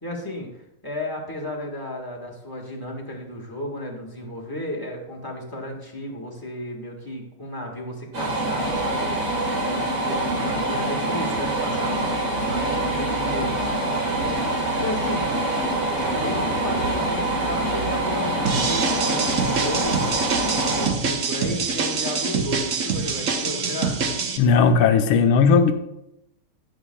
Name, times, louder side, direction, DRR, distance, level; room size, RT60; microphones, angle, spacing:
voice 1, 0.0-15.5 16.1-20.0 20.6-24.0, left 1 dB, 15° left, -1 dB, 1.1 m, -34 dB
sound 1, 8.1-20.9, right 1 dB, 75° right, 3.3 m, -25 dB
sound 2, 18.5-24.4, right 5 dB, 60° right, 0.8 m, -25 dB
voice 2, 24.4-25.7, left 5 dB, 75° left, 8 dB, 1.5 m, -16 dB
18.5 x 6.2 x 2.3 m, 0.85 s
omnidirectional pair, 2.4 m